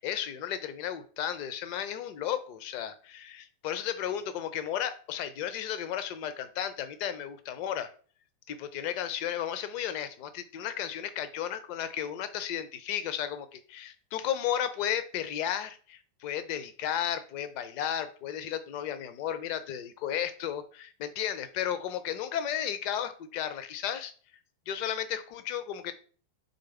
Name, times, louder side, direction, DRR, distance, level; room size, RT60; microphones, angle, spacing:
voice 1, 0.0-7.9 8.5-24.1 24.7-25.9, left 10 dB, 45° left, 11 dB, 0.6 m, -34 dB
3.9 x 3.4 x 3.4 m, 0.42 s
figure-of-eight pair, 90°, 0 cm